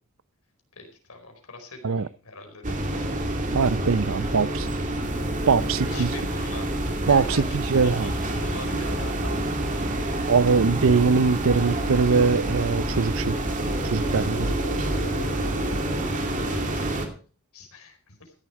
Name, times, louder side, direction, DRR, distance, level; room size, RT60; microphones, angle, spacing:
voice 1, 0.8-2.9 5.6-6.7 7.1-10.3 16.5-17.2 17.5-18.3, left 3 dB, 85° left, 4.5 m, -42 dB
sound 1, 2.6-17.1, right 1 dB, 35° right, 2.5 m, -27 dB
voice 2, 3.5-4.7 5.5-6.1 7.1-7.4 7.7-8.1 10.3-13.4 13.9-14.5, right 5 dB, 65° right, 0.5 m, -22 dB
sound 2, 13.0-17.0, left 1 dB, 55° left, 2.7 m, -41 dB
15.0 x 11.0 x 4.6 m
head